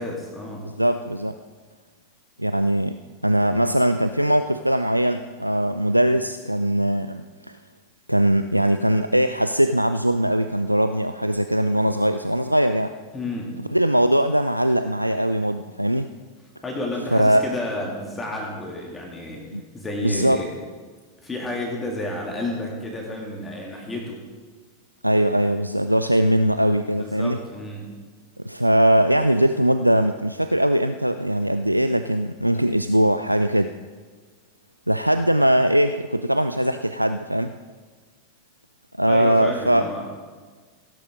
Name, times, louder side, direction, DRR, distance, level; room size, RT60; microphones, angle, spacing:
voice 1, 0.0-0.7 13.1-13.6 16.6-19.4 19.7-20.5 21.2-24.3 27.0-28.1 39.1-40.0, left 1 dB, 15° left, -1 dB, 2.5 m, -31 dB
voice 2, 0.6-1.4 2.4-3.0 3.2-7.6 8.1-12.9 13.7-16.1 17.1-17.4 19.5-19.6 20.0-20.4 25.0-27.4 28.4-33.7 34.9-37.5 39.0-39.9, right 1 dB, 90° right, 10 dB, 0.3 m, -21 dB
16.5 x 10.5 x 3.8 m, 1.4 s
figure-of-eight pair, 90°, 0 cm